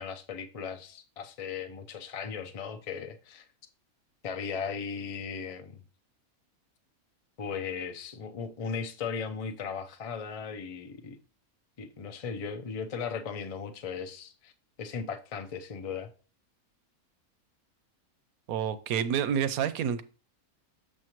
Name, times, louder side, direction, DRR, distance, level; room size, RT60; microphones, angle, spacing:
voice 1, 0.0-3.5 4.2-5.8 7.4-11.2 11.8-14.5 14.8-16.1, left 6 dB, 40° left, 0.5 m, -37 dB
voice 2, 18.5-20.0, right 8 dB, 80° right, 1.1 m, -28 dB
6.7 x 6.4 x 3.0 m
omnidirectional pair, 1.5 m